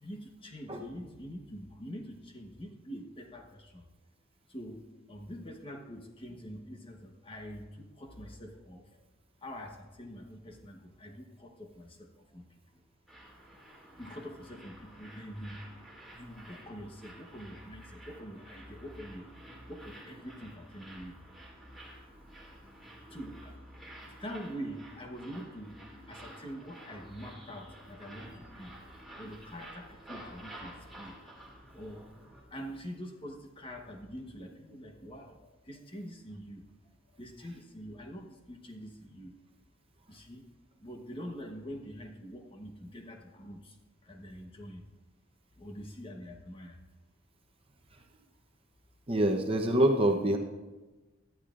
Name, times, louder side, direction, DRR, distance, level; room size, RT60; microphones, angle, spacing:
voice 1, 0.0-3.8 4.5-4.8 5.1-8.8 9.4-12.0 12.3-12.4 14.0-15.6 16.2-19.2 19.7-21.1 23.1-23.5 24.2-25.7 26.1-28.7 29.2-31.1 31.7-32.0 32.5-35.4 35.7-36.6 37.2-39.3 40.1-40.4 40.8-43.6 44.1-44.8 45.6-46.8, equal, 25° left, 2 dB, 1.1 m, -44 dB
sound 1, 13.1-32.4, right 1 dB, ahead, 2.3 m, -51 dB
voice 2, 49.1-50.4, right 1 dB, 25° right, 2 dB, 0.9 m, -25 dB
18.0 x 12.0 x 2.5 m, 1.2 s
head